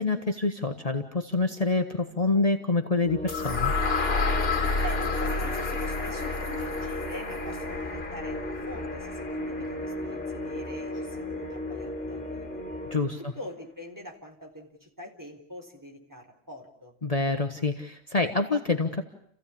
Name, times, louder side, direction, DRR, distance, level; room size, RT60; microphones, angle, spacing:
voice 1, 0.0-3.7 12.9-13.2 17.0-19.0, left 3 dB, 35° left, 5 dB, 1.3 m, -26 dB
sound 1, 3.0-13.0, left 1 dB, 5° left, 3.7 m, -35 dB
sound 2, 3.3-11.2, left 4 dB, 65° left, 1.8 m, -31 dB
voice 2, 4.8-12.6 13.2-16.9, equal, 15° right, 0 dB, 4.0 m, -43 dB
30.0 x 16.0 x 8.6 m, 0.69 s
omnidirectional pair, 1.1 m